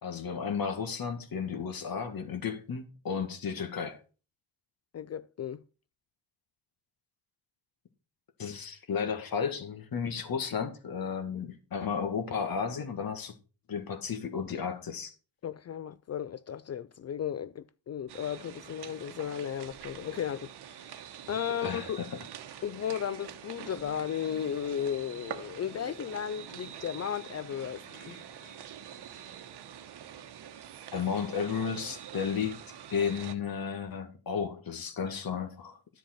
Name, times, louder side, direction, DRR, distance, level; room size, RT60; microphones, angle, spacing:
voice 1, 0.0-4.0 8.4-13.3 13.7-15.1 21.6-22.2 30.9-32.6 32.9-35.8, left 6 dB, 55° left, 1.8 m, -33 dB
voice 2, 4.9-5.6 15.4-20.9 21.3-22.0 22.6-28.3, left 9 dB, 40° left, 0.4 m, -35 dB
sound 1, 18.1-33.3, right 10 dB, 65° right, 1.0 m, -46 dB
sound 2, 23.8-30.9, left 2 dB, 85° left, 4.3 m, -56 dB
10.0 x 7.1 x 4.3 m
cardioid pair, 75°, 43 cm